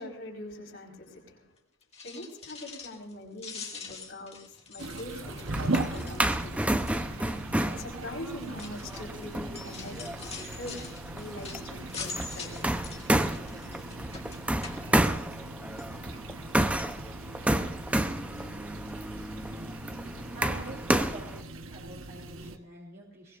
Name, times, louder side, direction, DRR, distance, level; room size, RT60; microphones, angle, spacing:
voice 1, 0.0-1.5 2.0-4.4 4.7-6.8 7.6-10.0 10.5-10.7 11.1-12.5, left 1 dB, 70° left, -1 dB, 4.7 m, -42 dB
sound 1, 1.8-3.1 3.4-6.5 6.9-7.2 7.9-15.5 15.8-16.5 16.8-16.9 17.5-17.6 17.8-17.9, left 4 dB, 30° left, 2.1 m, -44 dB
sound 2, 4.8-22.6, right 2 dB, 85° right, 1.1 m, -40 dB
sound 3, 5.2-21.4, right 1 dB, 5° right, 0.7 m, -31 dB
voice 2, 20.3-23.4, right 2 dB, 50° right, -4 dB, 3.2 m, -45 dB
22.5 x 21.0 x 2.5 m, 0.67 s
head